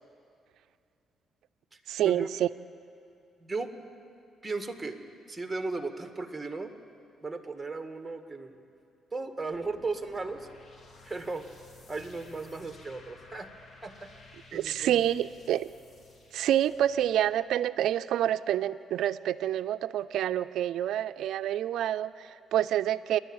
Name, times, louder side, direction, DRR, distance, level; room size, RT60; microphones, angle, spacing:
voice 1, 1.9-2.5 14.5-15.7 16.3-23.2, right 11 dB, 80° right, 12 dB, 0.4 m, -28 dB
voice 2, 4.4-5.0 5.3-6.7 7.2-8.6 9.1-10.5 11.0-11.4 11.9-13.5 13.8-14.1 14.5-14.9, right 3 dB, 15° right, 6 dB, 1.8 m, -36 dB
sound 1, 9.5-17.3, left 3 dB, 45° left, 2.3 m, -54 dB
29.0 x 11.0 x 8.8 m, 2.5 s
cardioid pair, 90°, 0 cm